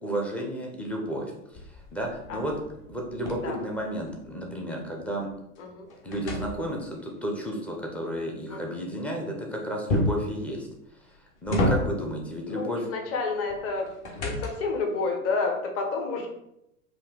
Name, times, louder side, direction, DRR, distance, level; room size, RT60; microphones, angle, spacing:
voice 1, 0.0-1.3 1.9-2.5 2.9-5.3 6.0-10.7 11.4-12.8, right 1 dB, 5° left, -1 dB, 0.4 m, -32 dB
sound 1, 1.5-4.4 4.8-7.1 9.9-10.4 11.0-12.2 13.5-14.8, left 1 dB, 50° left, 1.3 m, -30 dB
voice 2, 2.3-2.6 3.4-3.6 5.6-5.9 8.5-8.8 12.5-13.9 14.2-16.3, left 4 dB, 30° left, 2 dB, 0.9 m, -30 dB
4.7 x 2.7 x 3.7 m, 0.80 s
hypercardioid pair, 100°, 45 cm